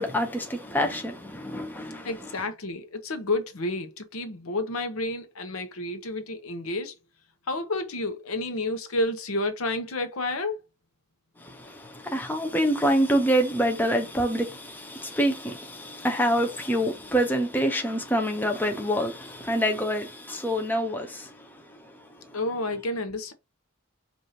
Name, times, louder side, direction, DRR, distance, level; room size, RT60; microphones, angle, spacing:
voice 1, 0.0-2.1 11.4-22.4, equal, 10° left, 0.7 m, -26 dB
voice 2, 2.0-6.9 7.5-10.6 22.3-23.3, left 2 dB, 85° left, 0.8 m, -30 dB
4.9 x 2.6 x 2.8 m
head